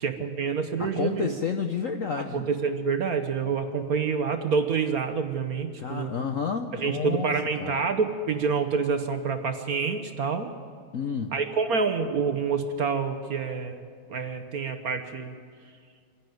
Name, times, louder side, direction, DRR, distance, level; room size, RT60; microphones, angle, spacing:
voice 1, 0.0-1.3 2.3-6.1 6.7-10.5 11.3-13.8 14.1-15.3, right 5 dB, 55° right, 8 dB, 1.2 m, -27 dB
voice 2, 0.8-2.4 5.8-7.8 10.9-11.3, left 6 dB, 60° left, 6 dB, 0.9 m, -30 dB
25.5 x 11.0 x 9.2 m, 2.1 s
omnidirectional pair, 2.3 m